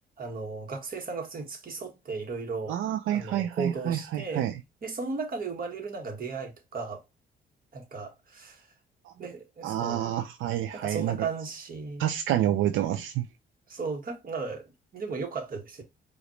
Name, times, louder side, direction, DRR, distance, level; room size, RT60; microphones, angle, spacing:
voice 1, 0.2-2.8 3.1-4.5 4.8-7.0 7.7-8.7 9.2-10.1 10.7-12.1 13.7-15.8, right 4 dB, 45° right, 1.5 m, -36 dB
voice 2, 2.7-4.5 9.1-9.2 9.6-11.3 12.0-13.3, right 11 dB, 85° right, 0.5 m, -28 dB
5.0 x 2.6 x 3.0 m
cardioid pair, 90°, 20 cm